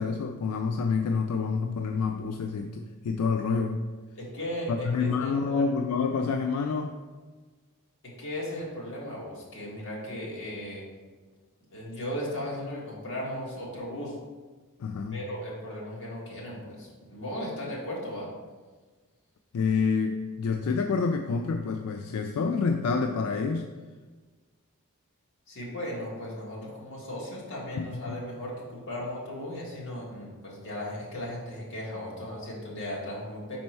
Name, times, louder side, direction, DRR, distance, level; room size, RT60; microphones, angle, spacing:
voice 1, 0.0-3.9 4.7-7.0 14.8-15.2 19.5-23.7 27.8-28.2, left 5 dB, 85° left, 5 dB, 0.4 m, -28 dB
voice 2, 4.2-5.6 8.2-10.9 11.7-14.2 15.1-18.3 25.5-33.6, left 1 dB, 60° left, -5 dB, 1.9 m, -36 dB
5.3 x 4.3 x 4.4 m, 1.4 s
head